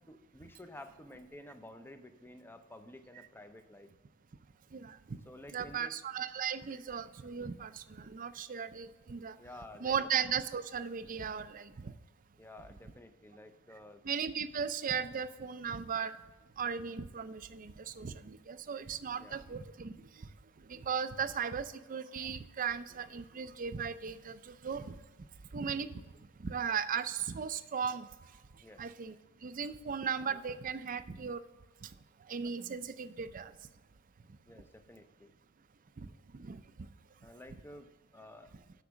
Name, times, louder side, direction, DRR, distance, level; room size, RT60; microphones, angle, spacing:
voice 1, 0.1-3.9 5.2-6.0 9.4-10.0 12.4-14.0 19.2-19.4 28.6-28.9 34.5-35.3 37.2-38.5, left 1 dB, 10° left, 8 dB, 0.6 m, -52 dB
voice 2, 4.7-5.2 5.5-9.4 9.8-11.9 14.0-16.2 16.6-20.3 20.7-24.9 25.5-26.0 26.4-28.1 28.8-29.2 29.4-31.4 31.8-31.9 32.3-33.5 36.3-36.6, right 6 dB, 40° right, 12 dB, 0.4 m, -37 dB
8.2 x 6.0 x 6.2 m, 1.2 s
head